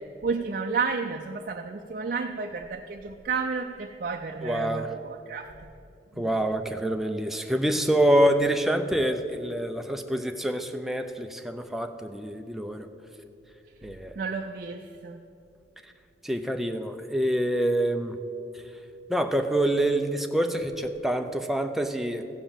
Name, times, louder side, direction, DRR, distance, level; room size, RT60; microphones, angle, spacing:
voice 1, 0.2-5.5 6.1-6.3 14.2-15.2, right 5 dB, 50° right, 3 dB, 0.5 m, -31 dB
voice 2, 4.4-4.9 6.2-12.9 13.8-14.1 16.2-18.2 19.1-22.2, right 1 dB, ahead, 5 dB, 0.6 m, -26 dB
15.0 x 5.1 x 7.3 m, 2.7 s
head